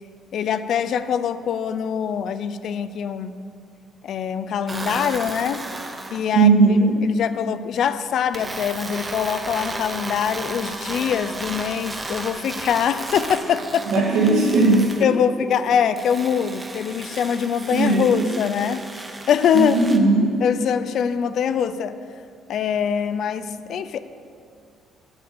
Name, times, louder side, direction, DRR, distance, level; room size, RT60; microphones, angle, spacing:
voice 1, 0.3-3.4 4.0-5.6 6.1-6.5 7.0-14.1 15.0-18.9 19.3-19.8 20.4-22.0 22.5-24.0, left 8 dB, 60° left, 13 dB, 0.5 m, -23 dB
sound 1, 4.7-6.2 8.3-15.1 16.0-20.0, right 2 dB, 20° right, 0.9 m, -34 dB
voice 2, 6.3-7.0 13.9-15.1 17.7-18.3 19.5-20.3, right 3 dB, 85° right, -6 dB, 1.9 m, -18 dB
9.7 x 8.0 x 7.0 m, 2.3 s
cardioid pair, 110°, 0 cm